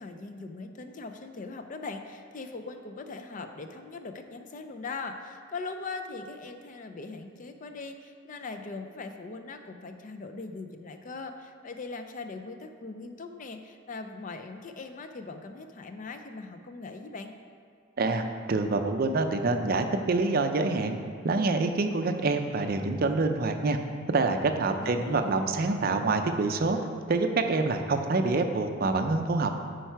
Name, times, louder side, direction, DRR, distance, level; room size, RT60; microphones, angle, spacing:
voice 1, 0.0-17.3 24.8-25.4, left 3 dB, 40° left, 6 dB, 0.4 m, -40 dB
voice 2, 18.0-21.0 21.2-23.8 24.1-26.8 27.1-29.5, right 3 dB, 45° right, 6 dB, 0.5 m, -26 dB
8.9 x 4.6 x 4.5 m, 2.2 s
head